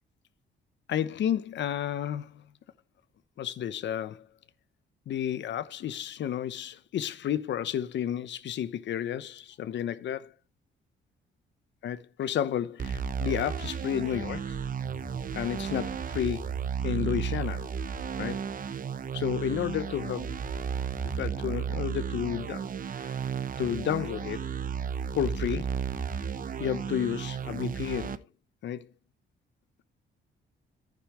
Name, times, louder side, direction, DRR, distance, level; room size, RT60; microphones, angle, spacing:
voice 1, 0.9-2.4 3.4-4.3 5.1-10.3 11.8-14.6 15.3-16.5 16.8-17.7 18.2-18.5 19.1-20.4 21.1-23.2 23.6-24.5 25.2-25.8 26.6-28.2 28.6-28.9, left 10 dB, 65° left, 0.9 m, -31 dB
sound 1, 12.8-28.2, right 7 dB, 45° right, 0.8 m, -33 dB
sound 2, 14.1-19.8, right 1 dB, 5° left, 2.2 m, -47 dB
10.5 x 9.7 x 3.2 m
cardioid pair, 90°, 20 cm